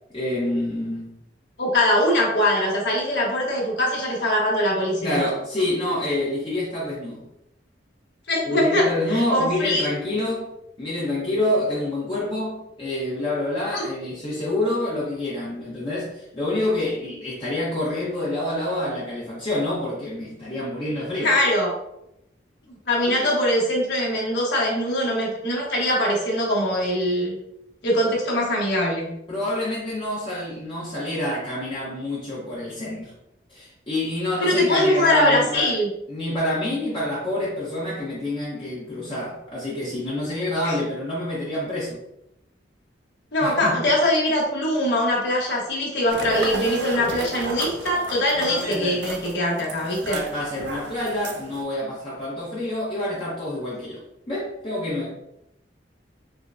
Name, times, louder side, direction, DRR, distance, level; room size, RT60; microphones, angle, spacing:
voice 1, 0.1-1.1 5.0-7.2 8.4-10.5 10.8-21.3 23.1-23.3 29.3-33.1 33.5-35.7 36.1-42.0 43.4-43.9 48.4-49.0 50.1-55.1, left 1 dB, 30° left, -8 dB, 0.9 m, -27 dB
voice 2, 1.6-5.2 8.3-9.8 13.7-13.8 21.2-21.7 22.9-27.4 27.8-29.1 34.4-35.9 40.6-40.7 43.3-50.2, left 1 dB, 65° left, -3 dB, 1.2 m, -22 dB
sound 1, 46.1-51.6, right 3 dB, 65° right, 0.6 m, -33 dB
5.5 x 2.2 x 2.5 m, 0.82 s
head